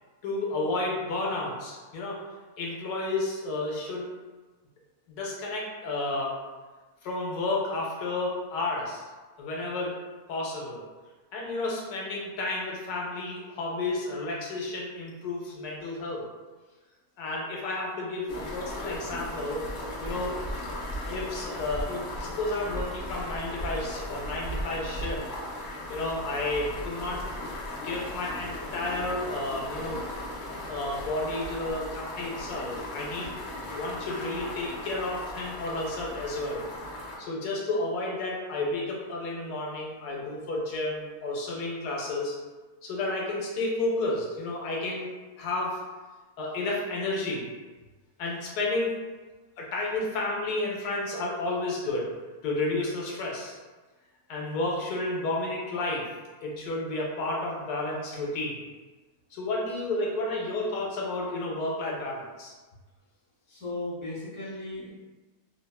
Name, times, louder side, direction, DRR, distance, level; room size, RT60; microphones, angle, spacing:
voice 1, 0.2-2.2 2.6-4.1 5.1-6.4 7.0-9.0 9.4-10.0 10.3-10.8 11.3-16.3 17.2-19.7 20.0-20.4 21.1-25.2 25.9-27.2 27.8-30.0 30.7-33.3 33.7-36.7 37.2-42.4 42.8-45.1 45.4-45.8 46.4-47.5 48.2-49.0 49.6-52.1 52.4-53.6 54.3-56.1 56.4-58.6 59.3-62.5, left 2 dB, 80° left, -2 dB, 1.2 m, -31 dB
sound 1, 18.3-37.2, left 1 dB, 65° left, 0.7 m, -37 dB
voice 2, 63.5-64.9, left 2 dB, 20° right, -10 dB, 0.4 m, -36 dB
2.7 x 2.3 x 2.2 m, 1.3 s
omnidirectional pair, 1.6 m